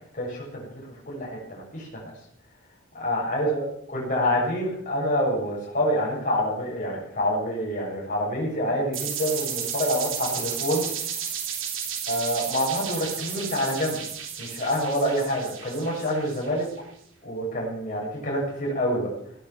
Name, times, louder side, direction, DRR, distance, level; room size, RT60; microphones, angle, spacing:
voice 1, 0.2-0.6 1.1-2.0 2.9-10.9 12.1-14.0 14.4-16.7 17.2-19.1, equal, 40° left, -3 dB, 7.1 m, -27 dB
sound 1, 8.9-16.7, right 8 dB, 65° right, 3.5 m, -33 dB
17.0 x 11.0 x 7.2 m, 0.67 s
head